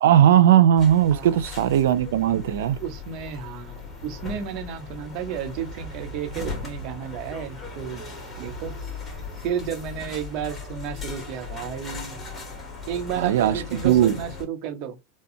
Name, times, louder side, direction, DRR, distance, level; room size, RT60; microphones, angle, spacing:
voice 1, 0.0-2.8 13.2-14.2, right 10 dB, 80° right, 0.4 m, -18 dB
New York City Street Sounds, 0.8-14.4, left 4 dB, 20° left, 2.0 m, -38 dB
voice 2, 1.1-1.4 2.8-8.1 8.4-8.7 9.4-12.2 12.9-15.0, right 8 dB, 50° right, 0.9 m, -32 dB
4.2 x 2.3 x 2.7 m
hypercardioid pair, 115°, 0 cm